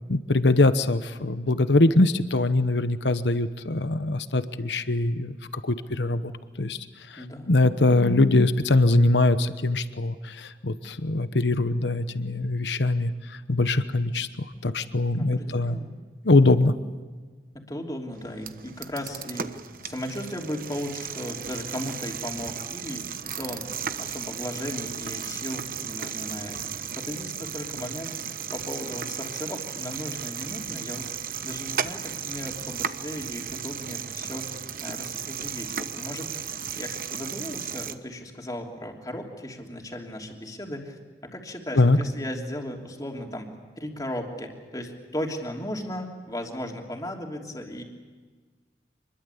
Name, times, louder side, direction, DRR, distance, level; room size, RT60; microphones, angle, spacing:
voice 1, 0.1-5.3 5.6-6.3 6.6-6.8 7.5-14.3 14.6-15.8 16.2-16.7 41.8-42.0, left 2 dB, 85° left, 11 dB, 1.1 m, -22 dB
voice 2, 7.2-7.5 15.1-16.0 17.5-28.1 28.5-43.5 43.8-47.8, equal, 20° left, 1 dB, 3.1 m, -36 dB
sound 1, 18.1-37.9, right 8 dB, 55° right, 1.0 m, -35 dB
27.0 x 21.5 x 8.4 m, 1.4 s
head